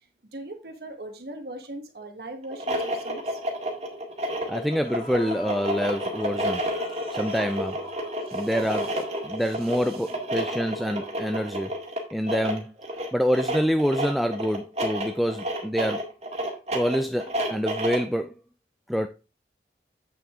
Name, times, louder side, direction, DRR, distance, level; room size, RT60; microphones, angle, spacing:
voice 1, 0.3-3.4 8.3-8.5 9.3-9.4, right 1 dB, 65° right, 1.4 m, -40 dB
sound 1, 2.4-18.1, equal, 40° right, 1.9 m, -30 dB
sound 2, 2.7-2.8 3.1-3.3 4.3-4.4 4.8-8.8 9.1-9.2, left 3 dB, 35° left, 1.1 m, -45 dB
voice 2, 4.5-6.6 7.1-7.8 8.3-11.7 12.1-12.7 13.1-16.0 16.7-18.3 18.9-19.1, equal, ahead, 0.3 m, -26 dB
8.5 x 6.1 x 3.7 m
head